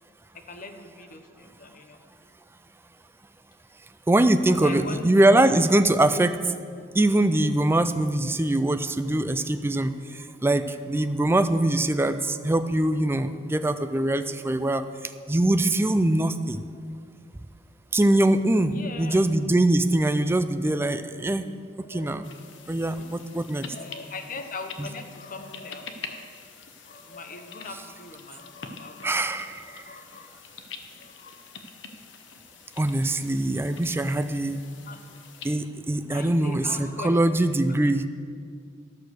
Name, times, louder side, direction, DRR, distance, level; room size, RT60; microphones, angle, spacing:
voice 1, 0.3-2.0 4.5-5.1 18.7-19.2 20.7-21.0 21.8-22.1 23.0-23.2 23.7-26.3 26.8-29.3 29.5-30.3 31.0-31.4 34.9-35.0 36.0-37.4 37.8-37.9, left 3 dB, 50° left, 6 dB, 0.9 m, -41 dB
voice 2, 4.1-6.4 6.9-14.8 15.3-16.6 17.9-21.5 21.9-22.3 22.7-23.6 24.8-24.9 29.0-29.8 32.8-34.6 35.4-38.1, right 1 dB, 15° right, 10 dB, 0.4 m, -23 dB
sound 1, 22.2-35.6, left 5 dB, 85° left, 0.9 m, -45 dB
12.5 x 6.5 x 6.5 m, 2.1 s
head